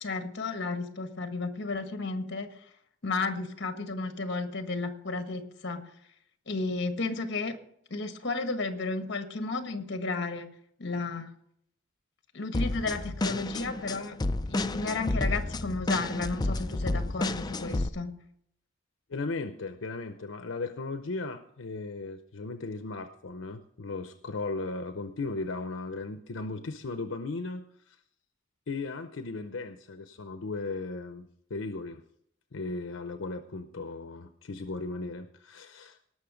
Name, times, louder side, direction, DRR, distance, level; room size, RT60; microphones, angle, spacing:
voice 1, 0.0-2.5 3.0-5.9 6.5-7.6 7.9-10.5 10.8-11.3 12.3-14.1 14.5-18.1, left 3 dB, 60° left, 7 dB, 1.5 m, -33 dB
sound 1, 12.5-17.9, left 2 dB, 20° left, 0.5 m, -31 dB
voice 2, 19.1-28.0 28.7-32.0 32.5-36.1, left 3 dB, 85° left, 8 dB, 0.7 m, -36 dB
18.5 x 6.3 x 5.1 m, 0.70 s
head